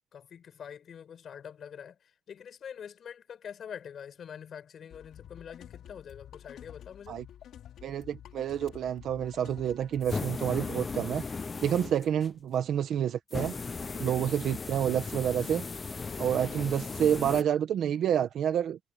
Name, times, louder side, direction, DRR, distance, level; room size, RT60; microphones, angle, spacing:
voice 1, 0.1-7.2 13.9-14.3 16.0-16.3, left 8 dB, 55° left, 4.8 m, -45 dB
sound 1, 4.9-11.3, left 10 dB, 80° left, 3.9 m, -49 dB
voice 2, 7.8-11.2 11.6-13.5 14.0-15.6 16.2-18.8, right 9 dB, 70° right, 1.4 m, -28 dB
sound 2, 10.0-12.3 13.3-17.4, left 4 dB, 25° left, 0.5 m, -37 dB
cardioid pair, 155°, 0 cm